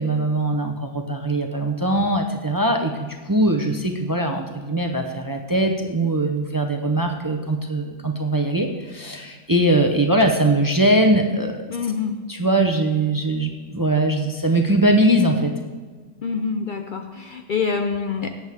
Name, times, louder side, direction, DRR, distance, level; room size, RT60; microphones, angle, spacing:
voice 1, 0.0-11.6 12.3-15.5, right 1 dB, 20° right, 4 dB, 0.7 m, -21 dB
voice 2, 11.7-12.1 16.2-18.4, left 5 dB, 50° left, 5 dB, 0.7 m, -26 dB
17.5 x 8.1 x 3.5 m, 1.4 s
omnidirectional pair, 1.3 m